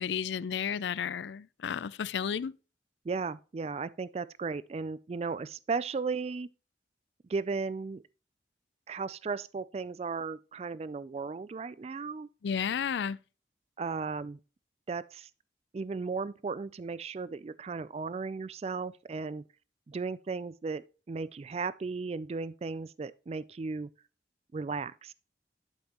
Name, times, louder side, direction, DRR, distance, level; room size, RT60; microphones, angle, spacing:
voice 1, 0.0-2.5 12.4-13.2, left 7 dB, 75° left, 0.4 m, -32 dB
voice 2, 3.0-6.5 7.3-8.0 8.9-12.3 13.8-14.4 14.9-15.3 15.7-19.4 19.9-23.9 24.5-25.1, right 4 dB, 35° right, 0.3 m, -35 dB
11.5 x 5.4 x 2.9 m
head